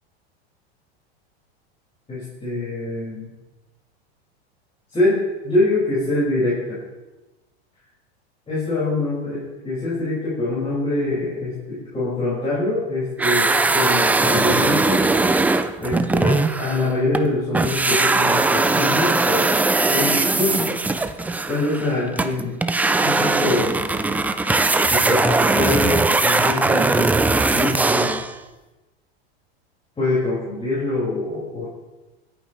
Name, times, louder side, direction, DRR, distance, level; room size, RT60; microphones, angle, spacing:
voice 1, 2.1-3.3 4.9-6.8 8.5-15.0 15.8-19.5 19.9-20.7 21.5-22.5 23.0-23.7 24.9-27.1 27.5-28.2 30.0-31.6, left 2 dB, 20° left, -8 dB, 5.2 m, -24 dB
sound 1, 13.2-17.3 17.5-28.3, right 3 dB, 5° right, 0.3 m, -20 dB
24.0 x 9.0 x 3.2 m, 1.1 s
supercardioid pair, 120°, 32 cm